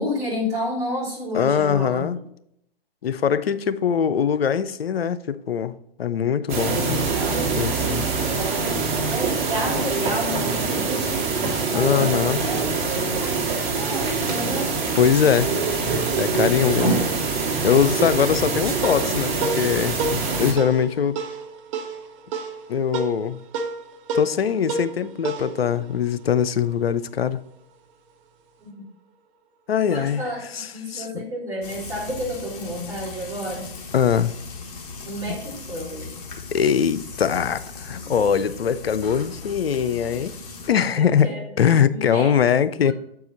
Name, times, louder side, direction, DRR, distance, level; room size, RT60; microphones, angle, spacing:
voice 1, 0.0-2.1 9.1-11.2 11.7-12.7 13.2-14.7 28.6-28.9 29.9-33.7 35.0-36.1 38.0-38.1 41.0-41.4 41.9-42.9, equal, 10° right, 2.8 m, -31 dB
voice 2, 1.3-2.2 3.0-7.1 7.6-8.1 11.7-12.4 14.9-15.5 16.2-17.0 17.6-21.2 22.7-23.4 24.1-27.4 29.7-30.2 30.5-31.2 33.9-34.3 36.5-40.3 40.6-41.3 41.6-42.9, left 8 dB, 90° left, 0.5 m, -22 dB
sound 1, 6.5-20.5, right 4 dB, 50° right, 1.9 m, -24 dB
sound 2, 18.4-27.2, right 3 dB, 30° right, 0.7 m, -32 dB
Frying (food), 31.6-40.7, left 4 dB, 40° left, 1.4 m, -38 dB
7.4 x 4.8 x 3.9 m
hypercardioid pair, 130°, 30 cm